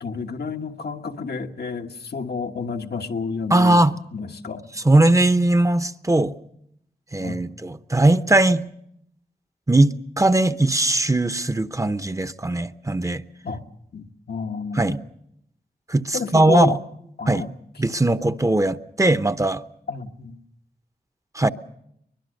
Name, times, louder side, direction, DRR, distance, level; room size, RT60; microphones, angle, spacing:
voice 1, 0.0-3.8 4.1-4.6 7.2-7.4 13.4-13.6 13.9-15.0 16.1-16.8 17.2-17.5 19.9-20.4, left 4 dB, 85° left, 1.3 m, -30 dB
voice 2, 3.5-3.9 4.8-6.3 7.1-8.7 9.7-13.2 14.7-15.0 15.9-16.8 17.3-17.5 17.8-19.6 21.3-21.5, right 2 dB, 20° right, 0.8 m, -19 dB
23.5 x 21.0 x 6.5 m
wide cardioid pair, 70°, 16 cm